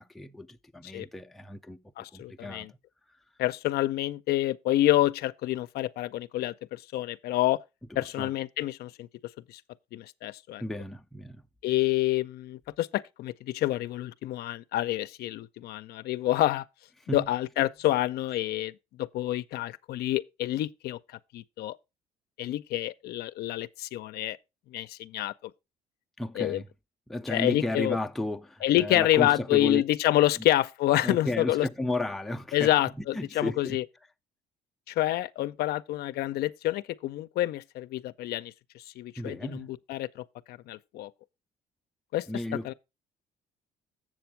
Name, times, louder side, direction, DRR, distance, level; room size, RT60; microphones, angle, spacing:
voice 1, 0.0-1.8 2.1-2.8 8.0-8.3 10.6-11.4 17.1-17.3 26.2-26.7 27.1-29.8 30.4-30.5 31.0-33.8 39.2-39.7 42.3-42.7, left 1 dB, ahead, 0.4 m, -34 dB
voice 2, 2.0-2.7 3.4-7.6 8.0-9.1 9.5-9.6 9.9-10.6 11.6-16.6 17.1-18.7 19.0-21.0 21.3-21.8 22.4-24.4 24.7-25.3 26.4-26.6 27.3-28.0 28.6-31.7 32.5-33.8 34.9-41.1 42.1-42.3 42.6-42.7, left 15 dB, 70° left, 0.5 m, -28 dB
7.5 x 6.9 x 4.4 m
cardioid pair, 110°, 17 cm